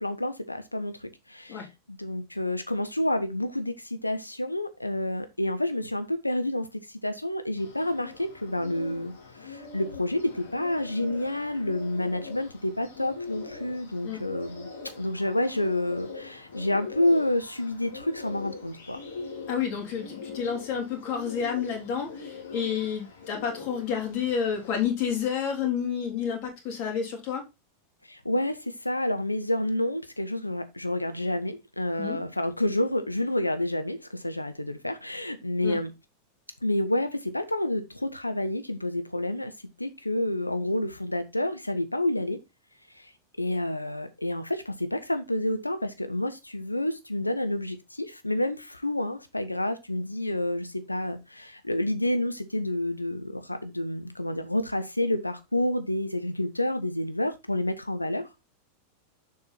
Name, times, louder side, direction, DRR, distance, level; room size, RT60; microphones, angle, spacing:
voice 1, 0.0-6.7 7.0-9.1 9.4-14.7 15.0-19.0 28.1-35.9 36.6-39.5 39.8-42.4 43.0-43.1 43.4-58.4, left 1 dB, 85° left, 1.0 m, -29 dB
Bird, 7.6-24.9, left 4 dB, 65° left, 2.4 m, -42 dB
voice 2, 19.5-27.4 32.0-32.2 35.6-35.8, left 7 dB, 45° left, 3.2 m, -30 dB
7.2 x 4.8 x 4.3 m
figure-of-eight pair, 90°, 0 cm